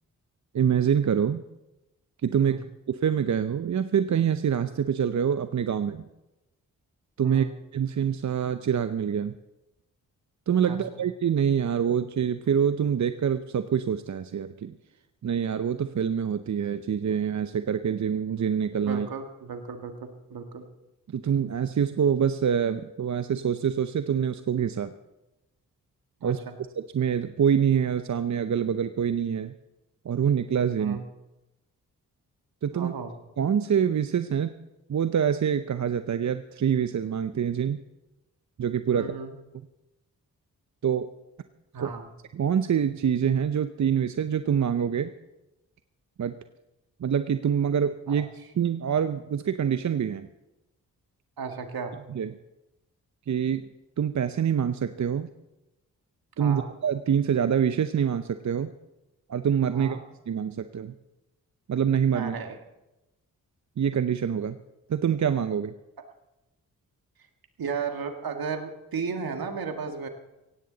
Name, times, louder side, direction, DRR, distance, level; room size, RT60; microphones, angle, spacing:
voice 1, 0.5-1.4 2.2-6.1 7.2-7.5 7.7-9.3 10.5-14.8 15.2-19.1 21.1-24.9 26.2-26.4 26.8-29.5 30.0-31.0 32.6-32.9 33.4-34.5 34.9-37.8 38.6-39.1 40.8-41.1 41.8-41.9 42.3-45.1 46.2-46.3 47.0-48.3 48.5-50.3 52.1-52.3 53.3-53.6 54.0-55.3 56.4-58.7 59.3-60.0 60.3-60.9 61.7-62.3 63.8-64.6 64.9-65.7, right 8 dB, 50° right, 11 dB, 0.7 m, -25 dB
voice 2, 10.6-11.0 18.8-20.6 26.2-26.6 30.8-31.0 32.7-33.1 38.9-39.3 41.7-42.1 48.1-48.2 51.4-51.9 56.4-56.7 59.7-60.0 62.1-62.6 67.6-70.1, right 5 dB, 70° right, 5 dB, 1.9 m, -35 dB
16.5 x 16.5 x 4.0 m, 0.96 s
supercardioid pair, 40°, 37 cm